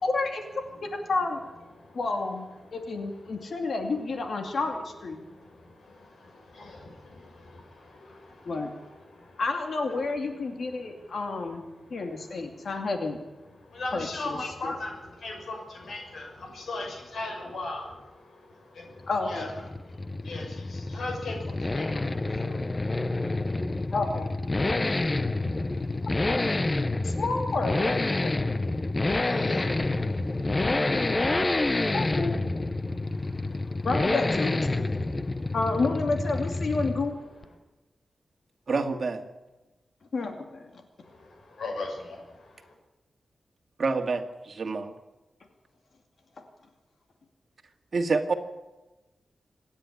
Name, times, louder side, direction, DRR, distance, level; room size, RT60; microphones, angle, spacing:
voice 1, 0.0-1.4 1.9-2.5 2.7-5.2 8.4-8.7 9.4-11.6 11.9-13.2 13.9-14.4 14.6-14.7 19.1-19.5 23.9-24.3 27.0-28.5 31.9-32.4 33.8-34.9 35.5-37.2 40.1-40.8, left 3 dB, 60° left, 4 dB, 2.5 m, -30 dB
voice 2, 5.2-9.4 10.6-11.2 11.7-12.7 13.6-19.5 19.8-23.9 24.6-27.2 28.2-32.0 32.8-33.9 34.9-35.6 41.0-42.7, left 2 dB, 75° left, 0 dB, 6.2 m, -41 dB
Accelerating revving vroom, 19.0-37.2 37.4-37.5, left 2 dB, 25° left, 0.7 m, -28 dB
voice 3, 38.7-39.2 43.8-44.9 47.9-48.3, right 4 dB, 50° right, 6 dB, 2.1 m, -27 dB
26.5 x 10.0 x 9.9 m, 1.1 s
wide cardioid pair, 130°, 0 cm